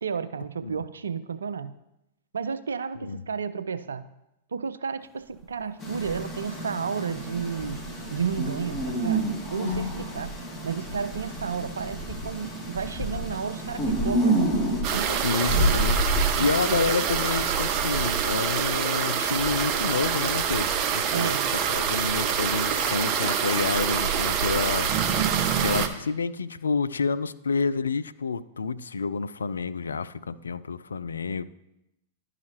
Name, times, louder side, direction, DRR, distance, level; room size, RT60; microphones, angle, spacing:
voice 1, 0.0-1.7 2.3-4.1 4.5-7.8 8.1-10.3 10.6-14.5 14.9-15.9 16.4-16.8 21.1-21.5, right 6 dB, 75° right, 12 dB, 0.4 m, -32 dB
sound 1, 5.4-5.5 6.0-6.7 7.1-16.4, equal, 5° left, 0.7 m, -31 dB
sound 2, 5.8-14.8, right 2 dB, 25° left, 2.4 m, -30 dB
sound 3, 14.8-25.9, right 7 dB, 40° right, 0.7 m, -26 dB
voice 2, 15.2-16.0 16.4-24.9 25.6-31.4, left 4 dB, 80° left, 15 dB, 0.3 m, -29 dB
11.5 x 4.9 x 2.9 m, 0.89 s
figure-of-eight pair, 100°, 0 cm